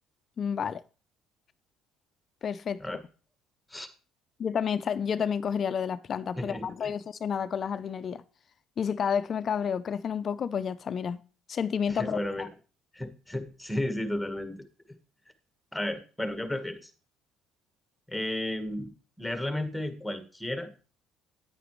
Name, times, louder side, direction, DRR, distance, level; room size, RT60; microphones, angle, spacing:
voice 1, 0.4-0.8 2.4-2.8 4.4-8.2 8.8-11.2 11.5-12.5, left 7 dB, 45° left, 0.5 m, -30 dB
voice 2, 6.4-6.9 11.9-12.4 12.9-14.5 15.7-16.9 18.1-18.9 19.2-20.7, left 1 dB, 5° left, 1.4 m, -33 dB
9.6 x 9.2 x 3.1 m
cardioid pair, 105°, 0 cm